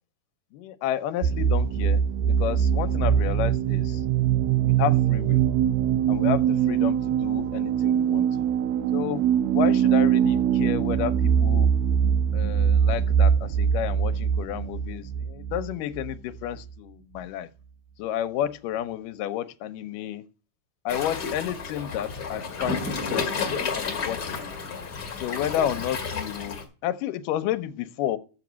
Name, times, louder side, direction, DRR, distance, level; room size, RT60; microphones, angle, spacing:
voice 1, 0.5-4.0 4.6-5.5 6.1-8.5 8.9-9.2 9.5-11.7 12.3-17.5 18.0-20.3 20.9-24.4 25.2-28.2, left 11 dB, 80° left, 2.2 m, -31 dB
sound 1, 1.2-16.8, right 8 dB, 90° right, 2.3 m, -23 dB
Waves surf, 20.9-26.6, left 5 dB, 35° left, 2.2 m, -31 dB
7.1 x 6.9 x 6.1 m
omnidirectional pair, 3.8 m